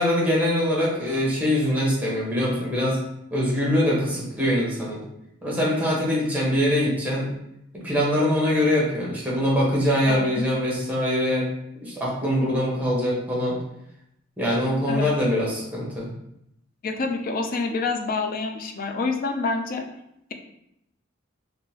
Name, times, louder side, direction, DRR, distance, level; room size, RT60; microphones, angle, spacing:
voice 1, 0.0-3.0 3.3-5.0 5.4-7.3 7.7-11.5 11.8-13.6 14.4-16.1, equal, 10° right, -4 dB, 0.9 m, -23 dB
voice 2, 10.1-10.5 14.9-15.1 16.8-19.8, left 3 dB, 45° left, 4 dB, 0.4 m, -27 dB
3.6 x 2.5 x 2.8 m, 0.80 s
head